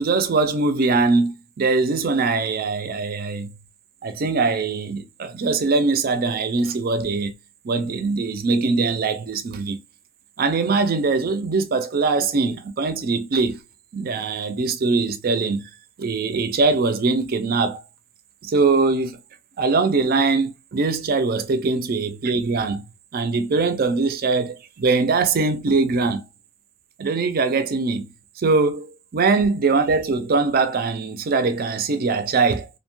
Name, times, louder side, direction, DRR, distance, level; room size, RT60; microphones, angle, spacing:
voice 1, 0.0-3.6 4.0-7.3 7.6-9.8 10.4-13.6 13.9-15.7 16.0-17.8 18.4-19.2 19.6-22.8 23.1-26.2 27.0-28.1 28.4-32.7, right 4 dB, 50° right, 0.4 m, -22 dB
2.7 x 2.1 x 3.0 m
head